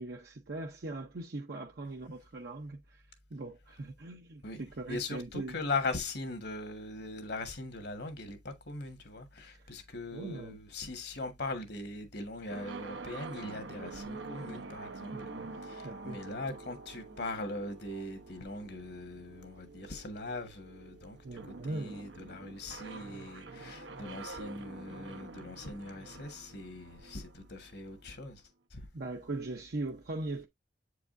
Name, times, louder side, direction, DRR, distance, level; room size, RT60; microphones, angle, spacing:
voice 1, 0.0-3.0 3.3-5.6 10.1-10.6 15.1-16.2 21.2-22.0 28.9-30.5, right 2 dB, 55° right, 0.7 m, -40 dB
voice 2, 4.4-15.1 15.6-28.4 28.7-28.8, left 2 dB, 60° left, 1.4 m, -40 dB
sound 1, 12.5-28.3, right 3 dB, 85° right, 0.9 m, -47 dB
8.0 x 4.8 x 2.5 m
head